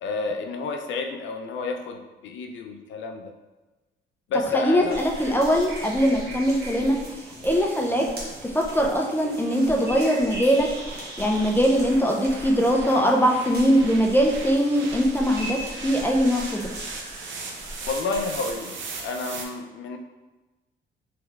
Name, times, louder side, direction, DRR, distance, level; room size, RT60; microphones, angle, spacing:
voice 1, 0.0-3.3 4.3-5.0 5.2-5.4 17.9-20.0, left 3 dB, 70° left, 4 dB, 0.4 m, -30 dB
sound 1, 4.4-19.5, right 4 dB, 75° right, 0.6 m, -41 dB
voice 2, 4.5-7.0 7.4-8.1 8.4-10.7 10.9-16.7, equal, 10° left, 0 dB, 0.4 m, -21 dB
sound 2, 4.9-19.1, right 1 dB, 50° right, 1.0 m, -39 dB
3.2 x 3.1 x 2.3 m, 1.1 s
cardioid pair, 90°, 20 cm